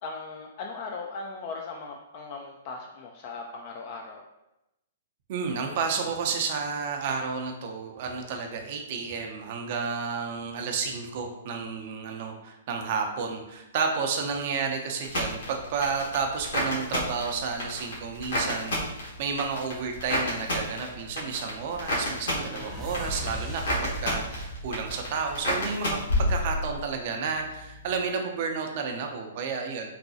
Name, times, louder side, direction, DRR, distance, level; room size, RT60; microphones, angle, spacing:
voice 1, 0.0-4.2 22.4-22.8, left 4 dB, 45° left, 1 dB, 0.3 m, -39 dB
voice 2, 5.3-26.0 26.3-29.9, right 5 dB, 50° right, 3 dB, 0.5 m, -31 dB
sound 1, 15.0-26.9 27.2-27.8, left 1 dB, 70° left, 1.3 m, -31 dB
sound 2, 21.0-26.0, right 1 dB, 5° left, 0.7 m, -39 dB
4.0 x 2.2 x 2.7 m, 0.93 s
hypercardioid pair, 125°, 0 cm